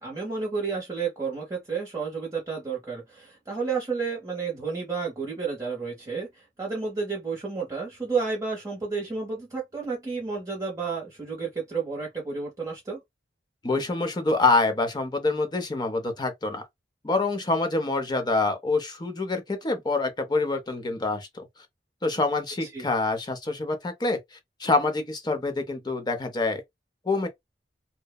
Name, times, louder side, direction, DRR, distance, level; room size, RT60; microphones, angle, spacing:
voice 1, 0.0-6.3 6.6-13.0 22.6-22.9, right 5 dB, 20° right, 0.7 m, -31 dB
voice 2, 13.6-16.6 17.0-21.4 22.0-24.2 24.6-26.6 27.1-27.3, left 3 dB, 25° left, 0.6 m, -26 dB
2.8 x 2.1 x 2.2 m
head